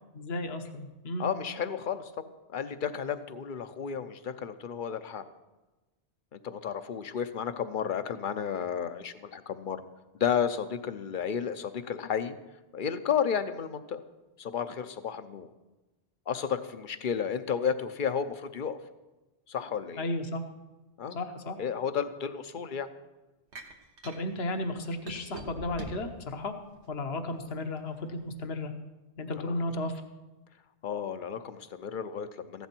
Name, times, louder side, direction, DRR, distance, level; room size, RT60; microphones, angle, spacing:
voice 1, 0.1-1.3 20.0-20.4 21.1-21.6 24.0-26.5 26.9-28.7 29.2-29.9, left 2 dB, 70° left, 6 dB, 1.3 m, -34 dB
voice 2, 1.2-2.1 2.5-5.2 6.3-9.8 10.2-12.4 12.7-14.0 14.4-15.5 16.3-18.8 19.5-20.0 21.0-21.2 21.6-22.9 29.4-29.5 30.8-32.7, left 7 dB, 55° left, 11 dB, 0.8 m, -32 dB
sound 1, 23.5-24.2 25.1-26.2 26.7-27.6, right 3 dB, 85° right, 1.5 m, -42 dB
15.0 x 11.5 x 4.5 m, 1.1 s
omnidirectional pair, 1.1 m